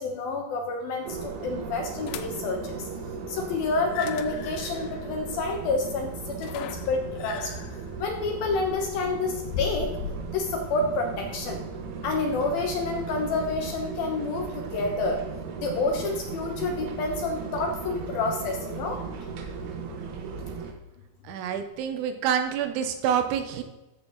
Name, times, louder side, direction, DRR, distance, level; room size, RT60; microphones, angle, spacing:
voice 1, 0.0-2.7 3.3-6.1 6.4-7.5 8.0-9.9 10.3-11.6 12.0-15.2 15.6-19.0, left 3 dB, 70° left, 3 dB, 2.4 m, -29 dB
sound 1, 1.0-20.7, right 5 dB, 70° right, 2.6 m, -37 dB
sound 2, 2.1-2.6 3.8-10.4, left 8 dB, 90° left, 2.2 m, -38 dB
voice 2, 21.2-23.6, right 8 dB, 90° right, 7 dB, 3.4 m, -27 dB
13.5 x 7.2 x 4.0 m, 1.0 s
omnidirectional pair, 5.2 m